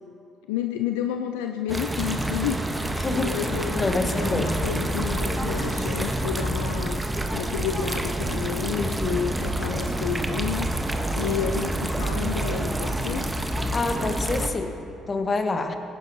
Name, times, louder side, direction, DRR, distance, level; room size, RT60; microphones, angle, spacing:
voice 1, 0.5-3.8 4.1-7.0 7.3-10.7 11.1-13.3, left 9 dB, 85° left, 6 dB, 0.4 m, -31 dB
sound 1, 1.7-14.5, right 1 dB, 15° right, 1.0 m, -27 dB
voice 2, 3.0-3.3 3.7-4.5 8.8-9.2 13.7-14.7 15.1-15.8, left 3 dB, 35° left, 6 dB, 1.1 m, -27 dB
17.5 x 10.0 x 2.7 m, 2.7 s
hypercardioid pair, 55°, 0 cm